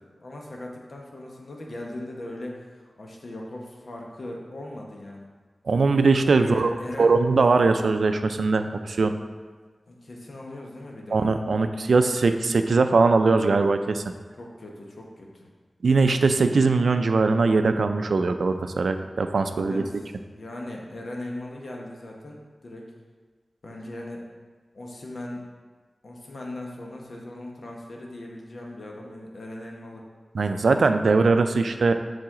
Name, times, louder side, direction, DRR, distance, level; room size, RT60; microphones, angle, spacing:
voice 1, 0.2-5.3 6.4-7.2 9.9-11.4 11.9-12.1 14.3-15.5 19.5-22.9 23.6-24.2 24.7-25.4 26.0-30.0, left 1 dB, 65° left, -1 dB, 1.0 m, -39 dB
voice 2, 5.7-6.7 7.0-9.1 11.1-14.0 15.8-19.8 30.3-31.9, right 3 dB, 85° right, 8 dB, 0.4 m, -21 dB
7.5 x 4.1 x 3.7 m, 1.5 s
wide cardioid pair, 100°, 0 cm